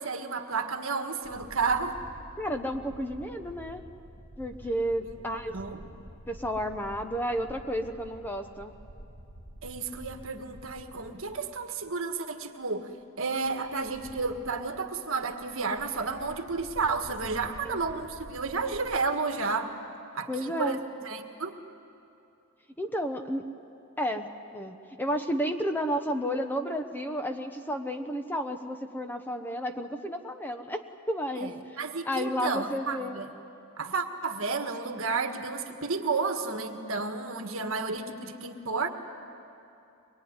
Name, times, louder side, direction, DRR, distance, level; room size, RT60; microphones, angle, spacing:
voice 1, 0.0-2.0 5.0-5.2 5.5-5.8 9.6-12.9 13.2-19.7 20.1-21.6 31.4-31.5 31.8-33.3 33.8-38.9, right 4 dB, 60° right, 5 dB, 1.7 m, -31 dB
sound 1, 1.2-11.8 12.1-12.2 13.4-19.0, right 1 dB, 30° left, 3.2 m, -49 dB
voice 2, 2.4-3.8 4.4-5.5 6.3-8.7 17.6-17.8 20.3-20.8 22.8-23.4 24.0-31.5 32.1-33.2 37.5-37.7, equal, 10° left, 6 dB, 0.9 m, -32 dB
24.0 x 21.0 x 9.8 m, 2.8 s
head